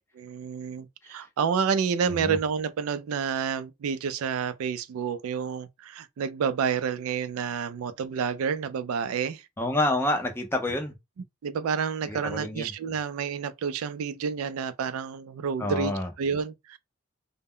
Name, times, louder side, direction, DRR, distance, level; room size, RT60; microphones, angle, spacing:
voice 1, 0.1-9.5 11.4-16.8, right 6 dB, 85° right, 0.3 m, -29 dB
voice 2, 9.6-10.9 12.0-12.7 15.6-16.1, left 1 dB, 10° left, 0.5 m, -28 dB
2.1 x 2.0 x 3.6 m
head